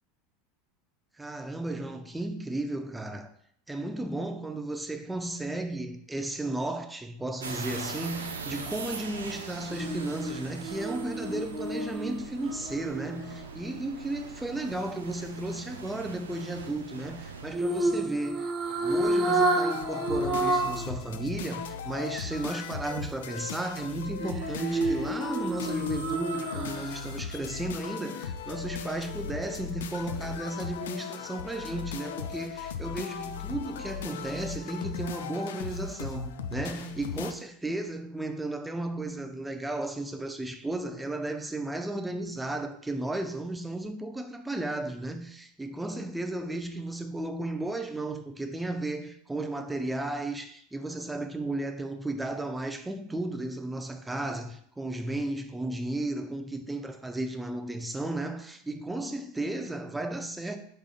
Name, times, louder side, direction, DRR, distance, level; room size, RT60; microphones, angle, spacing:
voice 1, 1.2-3.3 3.7-18.5 18.8-60.6, right 2 dB, 10° right, 0.5 m, -34 dB
sound 1, 7.4-17.6, right 4 dB, 80° right, 0.5 m, -41 dB
sound 2, 9.7-13.9 17.5-20.9 21.3-21.4 24.2-27.1 27.4-27.6, right 2 dB, 40° right, 0.9 m, -30 dB
sound 3, 19.7-37.3, left 6 dB, 70° left, 0.3 m, -38 dB
5.3 x 3.5 x 2.4 m
figure-of-eight pair, 80°, 0 cm